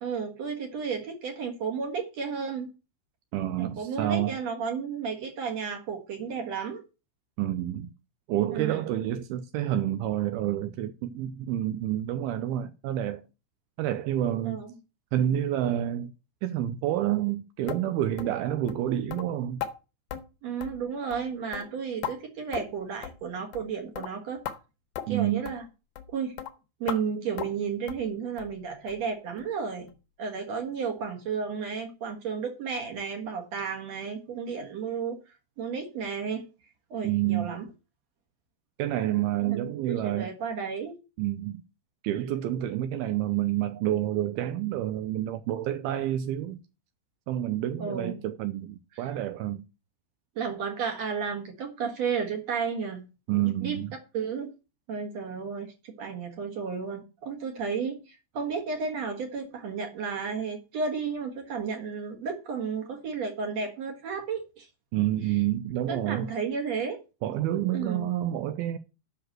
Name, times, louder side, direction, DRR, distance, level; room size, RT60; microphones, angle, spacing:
voice 1, 0.0-2.7 3.6-6.8 8.5-8.9 14.4-14.7 20.4-24.4 25.1-25.6 26.1-26.4 26.8-29.9 30.2-35.2 35.6-36.5 36.9-37.7 39.4-41.0 47.8-48.2 49.0-49.1 50.4-53.8 54.1-54.5 54.9-64.7 65.3-65.4 65.9-67.0 67.7-68.0, right 6 dB, 55° right, 2.0 m, -33 dB
voice 2, 3.3-4.4 7.4-7.9 8.3-13.2 13.8-14.6 15.1-16.1 16.4-19.6 25.1-25.4 37.0-37.6 38.8-40.3 41.2-41.6 42.0-46.6 47.3-49.6 53.3-53.9 64.9-66.3 67.2-68.8, right 12 dB, 85° right, 2.2 m, -28 dB
sound 1, 17.7-17.8 18.2-18.4 18.7-18.8 19.1-19.2 19.6-19.7 20.1-20.2 20.6-20.8 21.1-21.3 21.5-22.1 22.5-22.8 23.0-23.2 23.5-23.7 24.0-24.1 24.5-24.6 25.0-25.1 25.5-25.6 26.0-26.1 26.4-26.5 26.9-27.0 27.4-27.6 27.9-28.1 28.4-28.5 28.9-29.0 29.4-29.5 29.9-30.0, left 10 dB, 75° left, 2.5 m, -36 dB
8.0 x 6.0 x 7.6 m
omnidirectional pair, 5.1 m